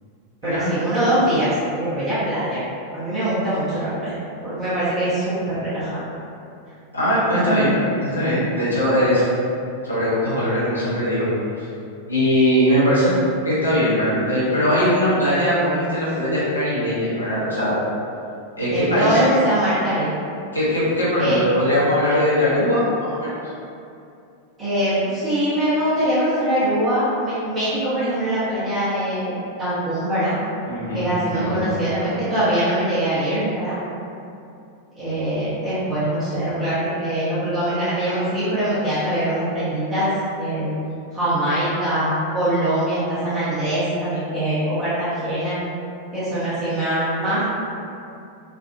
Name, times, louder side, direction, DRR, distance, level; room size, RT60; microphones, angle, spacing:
voice 1, 0.4-2.6 2.9-4.1 4.4-6.0 7.3-7.4 18.7-20.1 21.2-21.4 24.6-30.4 30.9-33.8 34.9-40.1 40.4-40.7 41.1-45.6 46.1-47.4, right 1 dB, 25° right, -14 dB, 1.1 m, -23 dB
voice 2, 6.9-9.2 9.8-11.3 12.1-13.1 13.4-17.8 18.6-19.2 20.5-23.5 30.7-31.1 31.3-31.6, equal, 85° left, -10 dB, 0.9 m, -20 dB
3.5 x 2.4 x 2.4 m, 2.6 s
figure-of-eight pair, 90°, 0 cm